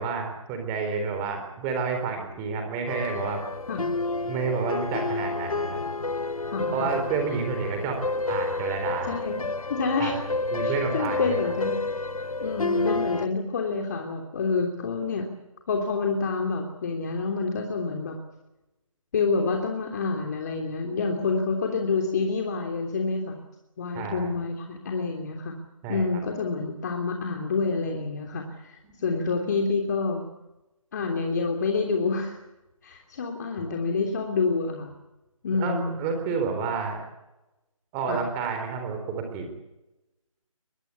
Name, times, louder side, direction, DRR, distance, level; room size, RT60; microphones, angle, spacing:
voice 1, 0.0-3.4 4.2-5.8 6.7-9.2 10.0-10.1 10.5-11.3 23.9-24.3 25.8-26.0 35.6-37.0 37.9-39.5, right 5 dB, 15° right, 5 dB, 3.8 m, -30 dB
sound 1, 2.9-13.3, left 3 dB, 80° left, 1.1 m, -30 dB
voice 2, 6.5-6.9 9.0-9.4 9.7-10.2 10.6-11.7 12.4-15.3 15.7-18.1 19.1-23.4 23.8-25.5 25.9-30.2 30.9-32.4 32.8-34.9 35.4-35.9 38.1-38.2, left 4 dB, 30° left, 2 dB, 3.2 m, -28 dB
23.0 x 22.0 x 8.4 m, 0.97 s
figure-of-eight pair, 160°, 18 cm